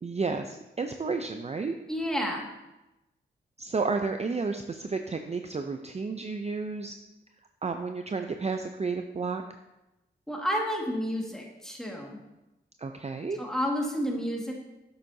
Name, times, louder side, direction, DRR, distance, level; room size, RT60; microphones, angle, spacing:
voice 1, 0.0-1.7 3.6-7.0 7.6-9.4 12.8-13.4, right 4 dB, 30° right, 6 dB, 0.5 m, -31 dB
voice 2, 1.9-2.5 10.3-12.2 13.3-14.5, equal, ahead, -1 dB, 1.9 m, -30 dB
7.8 x 7.2 x 2.7 m, 0.98 s
cardioid pair, 50°, 21 cm